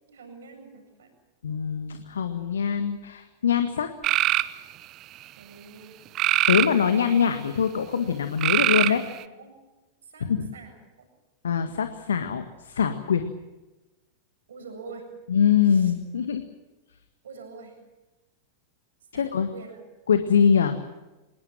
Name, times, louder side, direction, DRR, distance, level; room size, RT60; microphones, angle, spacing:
voice 1, 0.1-1.1 5.4-6.0 8.9-9.5 10.1-11.1 14.5-15.0 15.6-15.9 17.2-17.7 19.1-19.8, right 4 dB, 65° right, 5 dB, 7.7 m, -45 dB
voice 2, 1.4-3.9 6.5-9.0 10.2-10.5 11.4-13.2 15.3-16.4 19.1-19.5 20.1-20.8, left 7 dB, 65° left, 8 dB, 1.7 m, -23 dB
sound 1, 4.0-4.5 6.2-7.2 8.4-9.2, right 15 dB, 35° right, 1.1 m, -22 dB
25.0 x 22.0 x 7.5 m, 1.1 s
figure-of-eight pair, 90°, 0 cm